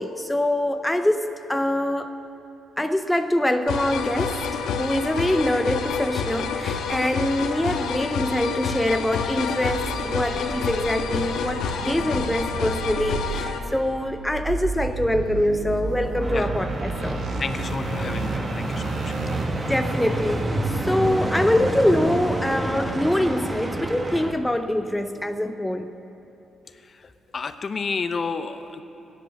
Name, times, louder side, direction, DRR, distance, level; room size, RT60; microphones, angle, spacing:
voice 1, 0.0-2.2 2.8-17.2 19.7-20.5 20.8-25.9, left 1 dB, 5° left, 7 dB, 0.5 m, -24 dB
sound 1, 3.7-13.6, left 6 dB, 85° left, 1.1 m, -28 dB
sound 2, 9.6-20.4, right 4 dB, 70° right, 1.2 m, -33 dB
sound 3, 16.2-24.3, right 1 dB, 20° right, 1.1 m, -28 dB
voice 2, 17.4-19.2 26.8-28.8, left 4 dB, 40° left, 10 dB, 0.7 m, -31 dB
16.0 x 10.5 x 6.4 m, 2.9 s
cardioid pair, 90°, 0 cm